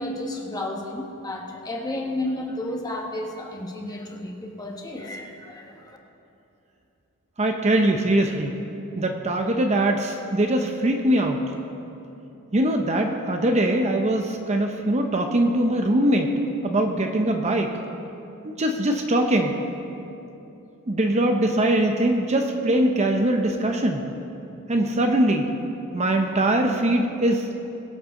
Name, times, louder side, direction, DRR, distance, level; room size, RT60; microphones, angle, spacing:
voice 1, 0.0-6.0, left 1 dB, 15° left, 0 dB, 1.3 m, -32 dB
voice 2, 7.4-8.5 9.0-11.4 12.5-16.3 16.6-17.7 18.6-19.6 20.9-24.0 24.7-25.5 25.9-27.5, right 1 dB, 30° right, 4 dB, 0.7 m, -22 dB
22.5 x 7.9 x 3.7 m, 2.9 s
head